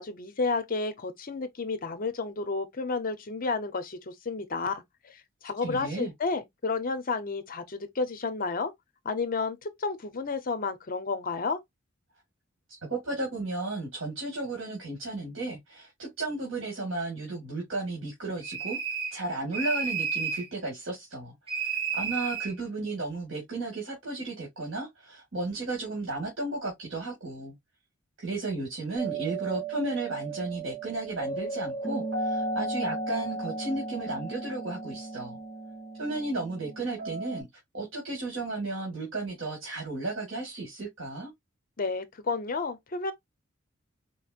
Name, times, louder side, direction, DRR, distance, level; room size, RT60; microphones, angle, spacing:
voice 1, 0.0-5.2 5.4-8.7 9.0-11.6 41.8-43.1, left 4 dB, 45° left, 0.7 m, -31 dB
voice 2, 5.6-6.1 12.7-18.8 19.1-21.3 21.6-27.5 28.2-35.4 36.0-37.5 37.7-41.3, right 2 dB, 80° right, 1.8 m, -34 dB
sound 1, 18.4-19.2 19.5-20.5 21.5-22.5, right 6 dB, 30° right, 2.4 m, -31 dB
sound 2, 29.0-37.4, right 2 dB, 55° right, 2.9 m, -35 dB
4.3 x 3.1 x 2.4 m
head